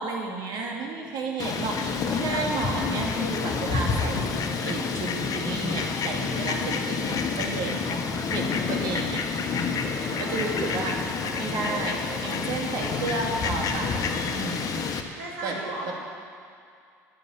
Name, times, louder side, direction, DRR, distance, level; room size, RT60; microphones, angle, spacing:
voice 1, 0.0-8.0 8.3-9.2 9.5-11.0 11.3-13.9 14.3-14.8 15.4-15.6 15.9-16.0, right 3 dB, 60° right, 0 dB, 2.4 m, -32 dB
sound 1, 1.0-14.5, right 3 dB, 25° right, 2.7 m, -44 dB
Fowl, 1.4-15.0, left 5 dB, 45° left, 1.3 m, -29 dB
voice 2, 15.2-15.9, right 2 dB, 85° right, -5 dB, 2.4 m, -39 dB
11.5 x 9.5 x 7.2 m, 2.3 s
hypercardioid pair, 70°, 8 cm